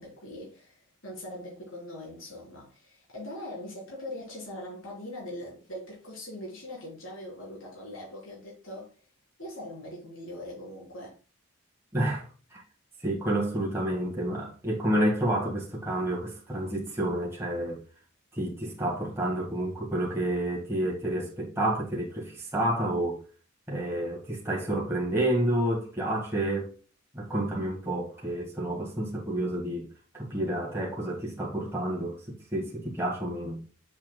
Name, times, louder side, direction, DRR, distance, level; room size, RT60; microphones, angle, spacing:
voice 1, 0.0-8.9 9.4-11.2, left 1 dB, 75° left, 3.6 m, -41 dB
voice 2, 11.9-12.6 13.0-17.8 18.3-23.2 23.7-26.7 27.1-29.9 30.1-33.6, right 1 dB, 10° right, 1.8 m, -29 dB
7.3 x 5.7 x 2.3 m
head